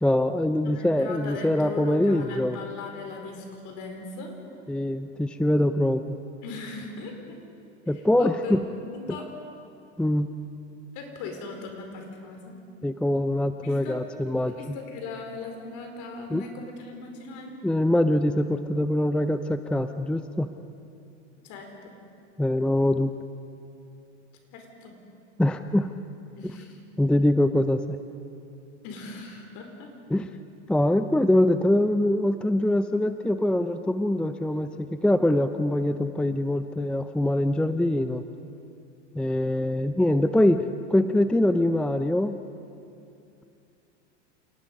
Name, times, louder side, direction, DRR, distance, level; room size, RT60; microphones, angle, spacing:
voice 1, 0.0-2.6 4.7-6.2 7.9-8.6 10.0-10.3 12.8-14.6 16.3-16.4 17.6-20.5 22.4-23.1 25.4-25.9 26.4-26.5 27.0-27.8 30.1-30.3 30.7-38.2 39.1-42.4, left 1 dB, 5° left, 10 dB, 0.5 m, -23 dB
voice 2, 0.6-4.3 6.4-7.4 7.9-9.3 10.9-12.6 13.6-17.6 21.4-21.9 24.5-25.0 26.4-26.8 28.8-29.9, left 3 dB, 55° left, 3 dB, 4.7 m, -39 dB
28.0 x 18.5 x 5.4 m, 2.6 s
hypercardioid pair, 95°, 36 cm